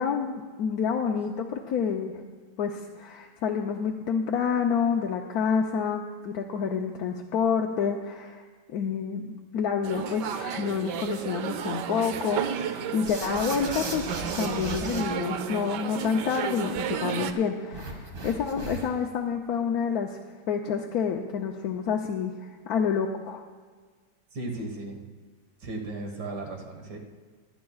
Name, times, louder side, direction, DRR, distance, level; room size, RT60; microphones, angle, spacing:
voice 1, 0.0-2.2 2.6-8.4 8.7-9.2 9.5-20.2 20.5-23.4, left 6 dB, 70° left, 2 dB, 1.1 m, -28 dB
sound 1, 9.8-17.3, right 8 dB, 90° right, 1.3 m, -32 dB
sound 2, 13.0-15.0 17.7-19.1, right 2 dB, 50° right, 1.9 m, -37 dB
voice 2, 24.3-25.0 25.6-27.0, right 2 dB, 75° right, 2 dB, 2.2 m, -35 dB
22.5 x 9.9 x 2.4 m, 1.5 s
omnidirectional pair, 1.8 m